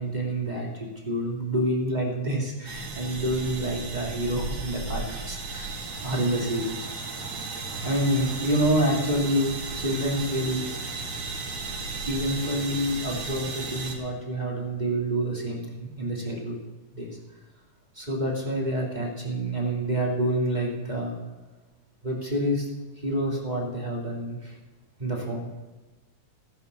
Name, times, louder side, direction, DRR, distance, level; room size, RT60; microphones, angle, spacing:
voice 1, 0.0-5.7 6.0-6.8 7.8-10.6 12.1-16.6 16.9-17.1 17.9-21.1 22.0-22.7 23.0-24.6 25.0-25.5, right 1 dB, 15° right, -2 dB, 2.3 m, -28 dB
sound 1, 2.7-13.9, right 3 dB, 55° right, 3.1 m, -35 dB
15.0 x 10.0 x 6.8 m, 1.2 s
omnidirectional pair, 3.4 m